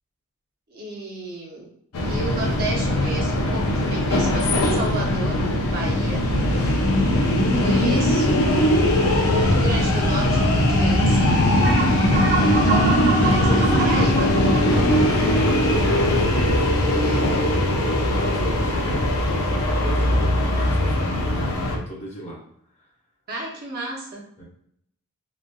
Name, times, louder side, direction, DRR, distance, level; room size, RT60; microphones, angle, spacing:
voice 1, 0.7-1.7 2.1-6.4 7.5-9.1 9.4-11.4 12.3-14.4 23.3-24.3, right 2 dB, 45° right, -3 dB, 0.7 m, -33 dB
sound 1, 1.9-21.8, left 1 dB, 70° left, 0.5 m, -20 dB
voice 2, 6.3-6.7 13.2-13.9 14.2-14.3 15.1-17.6 18.1-22.4 24.4-24.5, equal, 30° left, -4 dB, 0.9 m, -35 dB
sound 2, 11.6-16.5, right 3 dB, 65° right, 1.3 m, -27 dB
3.1 x 2.3 x 2.2 m, 0.71 s
head